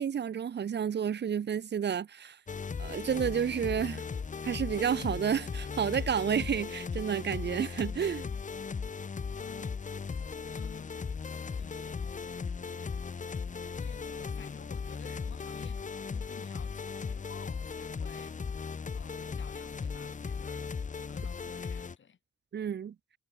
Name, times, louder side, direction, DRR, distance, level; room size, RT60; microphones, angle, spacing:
voice 1, 0.0-2.4 2.8-4.0 4.4-8.2 22.5-22.9, right 8 dB, 60° right, 0.7 m, -30 dB
sound 1, 2.5-22.0, left 5 dB, 40° left, 1.1 m, -37 dB
voice 2, 9.4-9.7 10.6-11.1 11.6-12.3 13.8-18.6 18.9-20.7 21.1-22.2, left 7 dB, 70° left, 6.3 m, -54 dB
wide cardioid pair, 150°, 20 cm